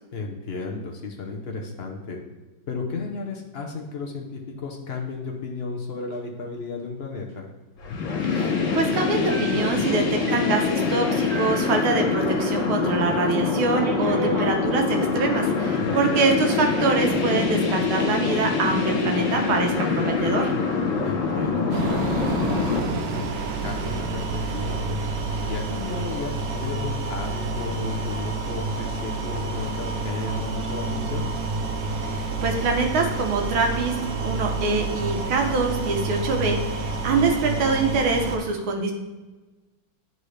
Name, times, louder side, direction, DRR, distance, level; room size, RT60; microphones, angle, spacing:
voice 1, 0.1-2.2 2.7-7.5 15.7-16.2 21.0-23.3 23.6-24.3 24.5-25.0 25.5-31.3, left 4 dB, 80° left, 0 dB, 0.5 m, -34 dB
sound 1, 7.8-22.8, left 4 dB, 65° left, 1.8 m, -24 dB
voice 2, 8.2-20.5 32.0-34.0 34.2-38.9, right 3 dB, 85° right, 3 dB, 1.8 m, -24 dB
sound 2, 9.3-12.5 12.8-12.9 13.7-14.6 15.5-16.0, right 3 dB, 40° right, 1.4 m, -35 dB
sound 3, 21.7-38.4, right 3 dB, 70° right, 0.9 m, -29 dB
10.5 x 4.0 x 3.2 m, 1.2 s
omnidirectional pair, 2.2 m